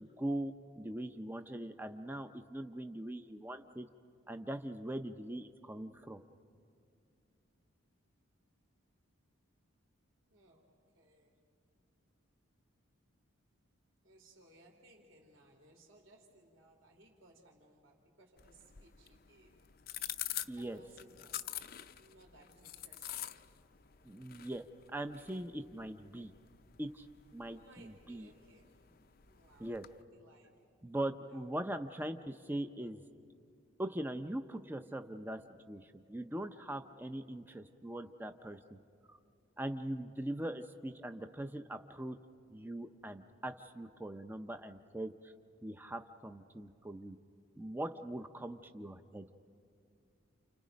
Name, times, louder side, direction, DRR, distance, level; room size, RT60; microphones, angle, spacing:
voice 1, 0.0-3.9 4.3-6.2 20.5-20.8 24.0-26.3 26.8-27.1 27.3-28.3 29.6-29.8 30.8-33.0 33.8-35.4 35.7-38.8 39.1-39.2 39.6-42.2 42.5-45.3 45.6-47.2 47.6-49.3, right 1 dB, 10° right, 8 dB, 0.5 m, -41 dB
voice 2, 10.3-11.4 14.0-19.6 20.6-21.5 21.9-23.4 27.4-28.8 29.3-30.6 31.2-31.5, right 1 dB, 65° right, 1 dB, 2.8 m, -63 dB
sound 1, 18.4-30.0, left 12 dB, 45° left, 0.6 m, -47 dB
29.5 x 29.5 x 5.2 m, 2.5 s
head